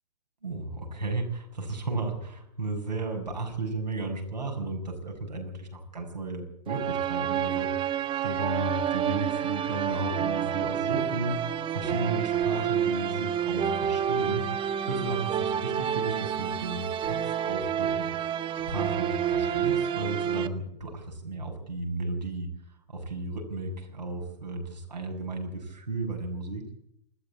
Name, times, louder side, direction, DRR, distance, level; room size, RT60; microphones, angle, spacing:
voice 1, 0.4-14.4 14.9-18.1 18.7-22.5 22.9-26.6, right 2 dB, 90° right, 1 dB, 7.2 m, -34 dB
sound 1, 6.7-20.5, right 9 dB, 25° right, 1.3 m, -29 dB
20.5 x 15.0 x 8.6 m, 0.75 s
figure-of-eight pair, 110°, 21 cm